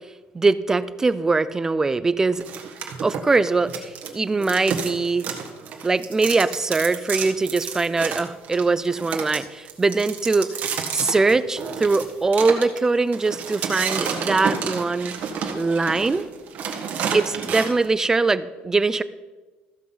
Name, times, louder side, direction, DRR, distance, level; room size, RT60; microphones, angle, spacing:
voice 1, 0.3-2.4 3.0-5.3 5.8-10.5 10.9-15.1 15.5-16.2 17.1-19.0, right 3 dB, 15° right, 15 dB, 0.4 m, -22 dB
sound 1, 2.4-4.1 4.4-17.9, right 6 dB, 50° right, 1.6 m, -30 dB
14.5 x 6.1 x 5.7 m, 1.2 s
cardioid pair, 145°, 4 cm